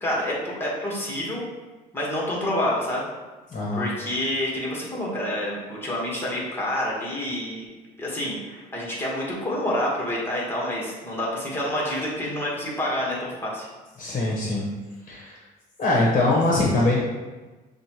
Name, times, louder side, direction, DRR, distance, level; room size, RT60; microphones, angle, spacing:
voice 1, 0.0-1.4 1.9-3.1 3.7-7.7 8.0-13.7, left 1 dB, 15° left, -5 dB, 1.5 m, -28 dB
voice 2, 3.5-3.9 14.0-14.7 15.1-15.4 15.8-17.0, left 2 dB, 40° left, -4 dB, 1.2 m, -22 dB
6.5 x 2.5 x 3.0 m, 1.2 s
cardioid pair, 110°, 17 cm